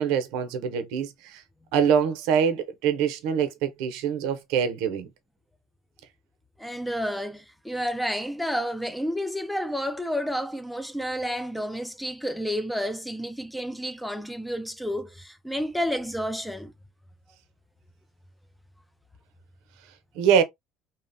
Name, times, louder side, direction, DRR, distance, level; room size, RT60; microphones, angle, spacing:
voice 1, 0.0-1.4 1.7-5.1 20.2-20.4, right 7 dB, 85° right, 0.6 m, -24 dB
voice 2, 6.6-16.7, equal, ahead, 0.3 m, -30 dB
2.8 x 2.0 x 2.5 m
cardioid pair, 130°, 0 cm